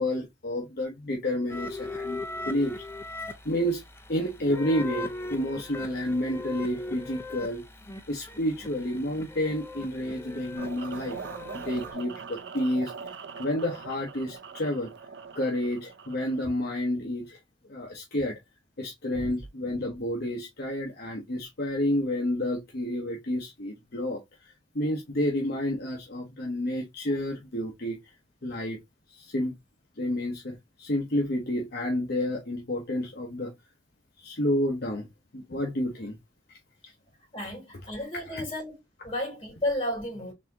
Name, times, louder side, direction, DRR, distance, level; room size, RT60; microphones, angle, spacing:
voice 1, 0.0-2.2 2.5-2.8 3.4-3.8 4.1-7.6 8.1-11.2 11.5-12.9 13.4-14.9 15.3-17.4 17.6-18.4 18.8-28.0 28.4-28.8 29.1-29.6 30.0-33.5 34.2-35.1 35.3-36.2 38.3-38.4, left 1 dB, 60° left, 1.0 m, -30 dB
sound 1, 1.5-11.9, left 2 dB, 15° left, 0.6 m, -39 dB
sound 2, 10.6-16.5, right 6 dB, 70° right, 0.5 m, -42 dB
voice 2, 37.3-38.8 39.0-40.3, left 1 dB, 30° left, 3.2 m, -33 dB
4.1 x 3.6 x 2.8 m
head